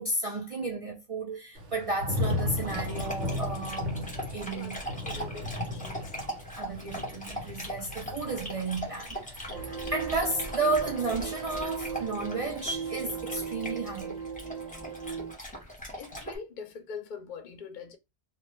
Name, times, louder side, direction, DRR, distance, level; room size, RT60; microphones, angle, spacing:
voice 1, 0.0-3.9 4.3-4.8 6.6-14.2, right 3 dB, 65° right, 0.3 m, -33 dB
Thunder / Rain, 1.5-12.5 12.9-13.4, left 2 dB, 90° right, 1.1 m, -37 dB
Dog, 2.1-16.4, equal, 10° left, 0.7 m, -40 dB
voice 2, 4.5-6.1 9.8-9.9 16.0-18.0, left 6 dB, 55° left, 0.6 m, -43 dB
sound 1, 9.5-15.3, right 6 dB, 45° right, 0.7 m, -37 dB
2.2 x 2.2 x 2.9 m
omnidirectional pair, 1.2 m